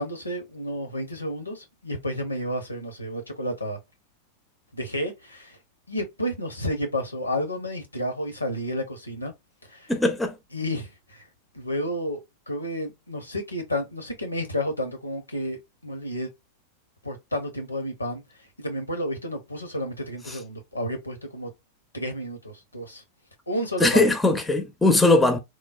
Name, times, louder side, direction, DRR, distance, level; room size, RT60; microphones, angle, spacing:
voice 1, 0.0-3.8 4.7-5.6 5.9-9.3 9.7-9.9 10.5-11.2 11.5-12.2 12.5-15.6 15.8-16.3 17.0-18.2 18.6-21.5 21.9-23.0 23.5-24.0, equal, 85° left, 0.8 m, -31 dB
voice 2, 9.9-10.3 23.8-25.4, left 2 dB, 10° left, 0.5 m, -20 dB
3.0 x 2.0 x 2.4 m
figure-of-eight pair, 90°, 0 cm